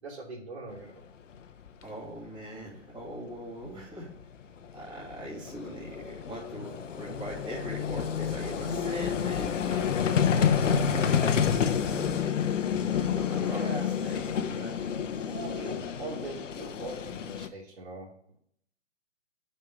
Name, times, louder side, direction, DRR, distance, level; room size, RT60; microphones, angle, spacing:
voice 1, 0.0-1.0 13.5-13.9 15.2-18.4, right 3 dB, 55° right, -4 dB, 2.9 m, -41 dB
Vehicle, 1.4-1.5 1.7-1.8 3.8-3.9 4.1-17.5, left 7 dB, 75° left, 0.8 m, -29 dB
voice 2, 1.8-4.1 4.7-12.2 12.9-14.8, right 1 dB, 10° right, -6 dB, 2.6 m, -42 dB
11.0 x 5.5 x 2.4 m, 0.68 s
hypercardioid pair, 145°, 38 cm